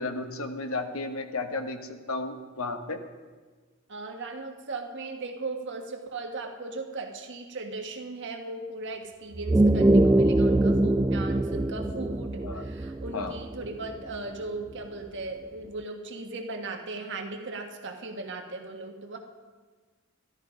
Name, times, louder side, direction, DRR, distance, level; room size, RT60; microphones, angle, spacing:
voice 1, 0.0-3.0 12.4-12.7 13.1-13.4, left 3 dB, 70° left, 7 dB, 1.1 m, -33 dB
voice 2, 3.9-19.2, right 3 dB, 60° right, 3 dB, 1.5 m, -37 dB
sound 1, 9.3-14.2, right 1 dB, 15° right, 0.3 m, -23 dB
13.5 x 12.0 x 5.1 m, 1.4 s
head